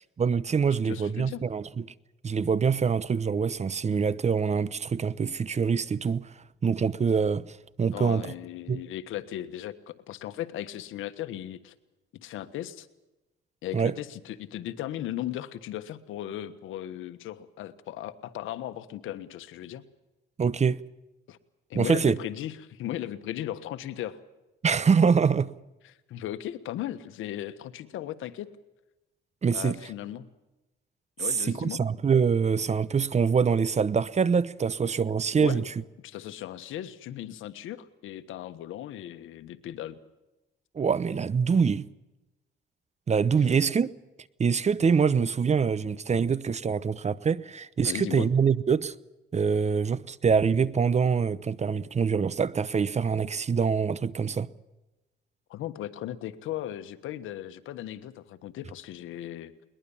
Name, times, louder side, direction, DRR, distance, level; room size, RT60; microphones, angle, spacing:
voice 1, 0.2-1.9 2.2-6.3 6.6-8.3 8.7-8.8 13.7-13.9 20.4-20.8 21.7-22.2 24.6-25.5 29.4-29.8 31.4-35.7 40.7-41.9 43.1-43.9 44.4-48.9 49.3-54.5, right 6 dB, 35° right, 0.9 m, -25 dB
voice 2, 0.8-1.4 7.9-11.7 12.1-12.9 13.6-19.8 21.3-21.4 21.7-24.2 25.8-28.5 29.5-30.3 31.2-31.8 35.4-35.7 36.0-40.0 43.4-43.5 47.8-48.3 55.5-59.5, left 12 dB, 85° left, 1.4 m, -37 dB
22.0 x 20.5 x 7.2 m
cardioid pair, 90°, 20 cm